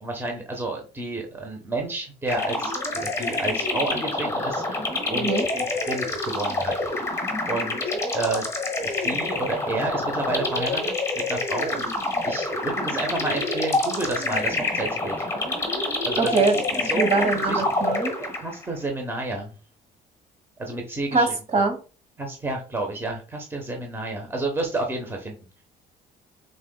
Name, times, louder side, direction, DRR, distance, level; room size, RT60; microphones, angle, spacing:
voice 1, 0.0-6.7 7.5-7.8 8.1-8.4 8.8-11.8 12.2-15.3 16.0-17.6 18.2-19.5 20.6-21.3 22.2-25.3, right 2 dB, 15° right, 1 dB, 1.0 m, -30 dB
sound 1, 2.3-18.7, left 2 dB, 15° left, 1.3 m, -27 dB
voice 2, 5.1-5.4 16.2-16.6 17.0-18.1 21.1-21.8, right 3 dB, 40° right, 5 dB, 1.3 m, -22 dB
5.8 x 3.8 x 2.2 m, 0.35 s
cardioid pair, 110°, 17 cm